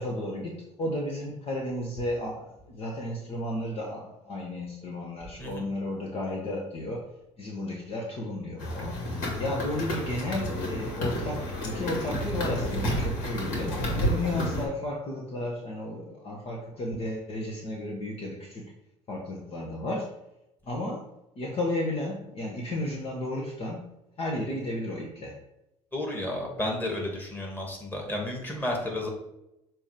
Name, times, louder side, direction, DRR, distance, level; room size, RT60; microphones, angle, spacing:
voice 1, 0.0-7.1 7.4-18.7 19.1-20.1 20.7-21.1 21.4-23.9 24.2-25.4, left 1 dB, 40° left, -1 dB, 1.4 m, -33 dB
sound 1, 8.6-14.7, equal, 60° left, 2.2 m, -31 dB
voice 2, 25.9-29.1, left 1 dB, 10° left, -1 dB, 2.4 m, -32 dB
7.0 x 3.0 x 5.0 m, 0.87 s
hypercardioid pair, 80°, 15 cm